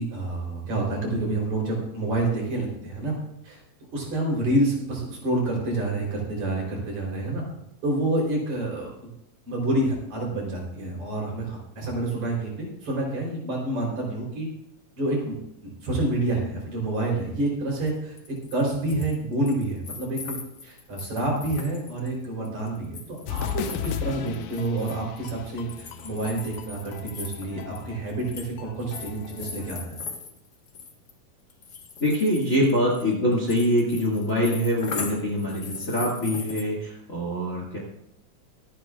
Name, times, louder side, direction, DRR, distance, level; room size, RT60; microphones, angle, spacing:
voice 1, 0.0-3.1 3.4-3.6 3.9-7.4 7.8-9.1 9.4-14.5 14.9-15.3 15.8-20.4 20.6-30.0, right 2 dB, 55° right, -2 dB, 5.1 m, -28 dB
sound 1, 17.8-17.9 18.2-19.2 19.4-25.3 25.7-28.5 28.8-31.1 31.5-36.6, left 4 dB, 55° left, 1.1 m, -39 dB
sound 2, 23.3-29.9, left 10 dB, 80° left, 1.7 m, -37 dB
voice 2, 32.0-37.8, equal, 25° left, -2 dB, 2.2 m, -24 dB
25.5 x 9.1 x 2.5 m, 0.80 s
omnidirectional pair, 4.0 m